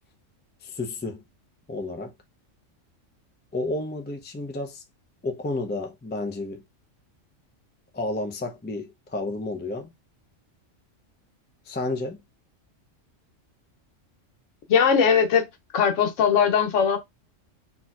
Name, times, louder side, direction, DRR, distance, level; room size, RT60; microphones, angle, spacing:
voice 1, 0.6-1.2 1.7-2.1 3.5-4.8 5.2-6.6 7.9-9.9 11.7-12.2, left 2 dB, 15° left, 0.3 m, -31 dB
voice 2, 14.7-15.5 15.7-17.0, left 7 dB, 75° left, 1.1 m, -20 dB
4.2 x 2.8 x 2.3 m
omnidirectional pair, 1.3 m